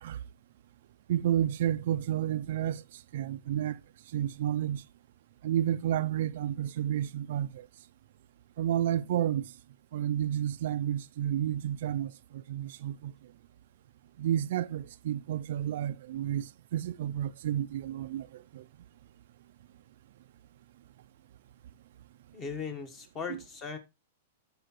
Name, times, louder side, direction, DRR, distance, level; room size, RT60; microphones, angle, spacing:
voice 1, 1.1-2.8 3.1-3.8 4.1-4.8 5.4-7.6 8.6-9.5 9.9-13.1 14.2-18.3 18.5-18.6, right 11 dB, 60° right, 0.3 m, -31 dB
voice 2, 22.3-23.8, left 5 dB, 20° left, 1.2 m, -38 dB
13.0 x 4.7 x 3.0 m
supercardioid pair, 160°, 0 cm